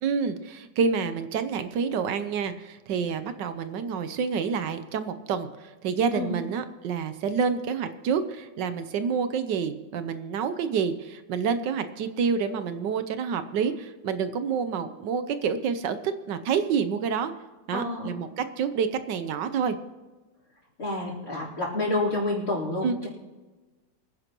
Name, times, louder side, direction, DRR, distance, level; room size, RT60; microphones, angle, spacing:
voice 1, 0.0-16.0 16.3-17.3 17.7-19.8 22.8-23.1, right 6 dB, 75° right, 10 dB, 1.4 m, -28 dB
voice 2, 6.1-6.5 17.7-18.2 20.8-23.1, left 2 dB, 50° left, -3 dB, 4.3 m, -29 dB
24.5 x 10.5 x 3.0 m, 1.2 s
omnidirectional pair, 2.0 m